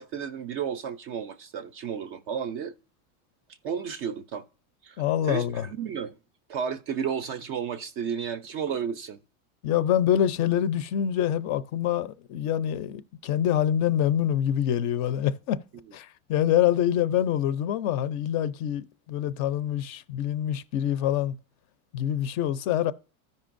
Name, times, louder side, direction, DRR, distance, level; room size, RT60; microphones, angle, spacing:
voice 1, 0.0-2.7 3.6-4.4 4.8-6.1 6.5-9.2, right 7 dB, 30° right, 0.4 m, -32 dB
voice 2, 5.0-5.7 9.6-15.6 15.9-21.4 21.9-22.9, left 10 dB, 40° left, 0.5 m, -25 dB
13.5 x 5.3 x 2.5 m
supercardioid pair, 140°, 45 cm